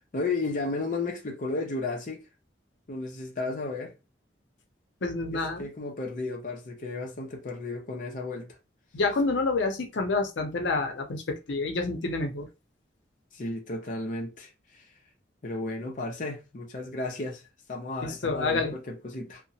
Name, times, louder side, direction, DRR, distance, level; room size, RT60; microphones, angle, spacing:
voice 1, 0.1-2.2 2.9-3.9 5.3-8.5 13.3-14.9 15.4-17.4 17.7-19.4, left 3 dB, 45° left, 0.5 m, -33 dB
voice 2, 5.0-5.7 8.9-12.5 18.0-18.7, left 3 dB, 90° left, 0.6 m, -28 dB
2.8 x 2.1 x 2.6 m
head